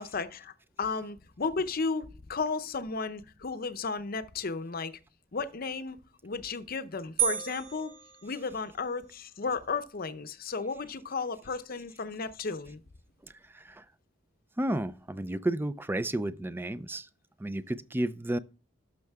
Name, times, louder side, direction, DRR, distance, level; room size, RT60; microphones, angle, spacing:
voice 1, 0.0-4.9 5.3-6.0 6.2-7.9 8.2-12.8 15.3-15.4, left 4 dB, 50° left, 0.7 m, -34 dB
sound 1, 7.2-9.0, right 10 dB, 80° right, 1.4 m, -33 dB
voice 2, 13.2-13.8 14.6-17.1 17.4-18.4, right 1 dB, 10° right, 0.4 m, -32 dB
12.0 x 6.6 x 3.5 m
head